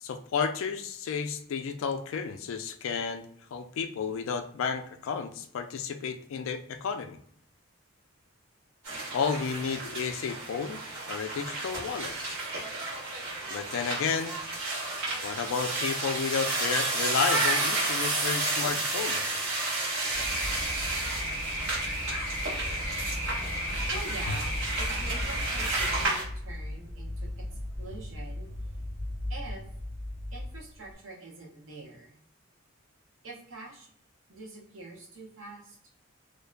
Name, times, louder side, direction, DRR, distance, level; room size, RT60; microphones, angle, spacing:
voice 1, 0.0-7.2 9.1-12.4 13.5-14.4 15.2-19.5, left 6 dB, 70° left, 8 dB, 0.3 m, -32 dB
sound 1, 8.8-26.2, right 2 dB, 85° right, 1.2 m, -32 dB
sound 2, 20.1-26.1, equal, 40° right, 0.9 m, -34 dB
sound 3, 22.6-30.9, left 1 dB, 55° right, 1.5 m, -38 dB
voice 2, 23.9-27.5 27.8-28.5 29.3-29.7 30.3-32.2 33.2-33.9 34.3-35.8, right 2 dB, 70° right, -1 dB, 0.8 m, -45 dB
2.5 x 2.1 x 2.4 m, 0.63 s
head